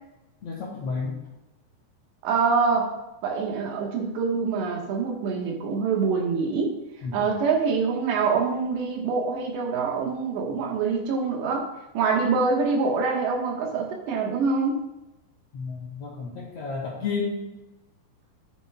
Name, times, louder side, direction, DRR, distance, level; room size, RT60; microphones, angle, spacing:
voice 1, 0.4-1.2 7.0-7.4 15.5-17.4, left 4 dB, 55° left, -4 dB, 2.0 m, -31 dB
voice 2, 2.2-2.9 3.2-6.7 7.1-11.7 12.0-14.8, right 5 dB, 80° right, 0 dB, 3.7 m, -25 dB
13.0 x 10.0 x 2.4 m, 0.98 s
omnidirectional pair, 5.0 m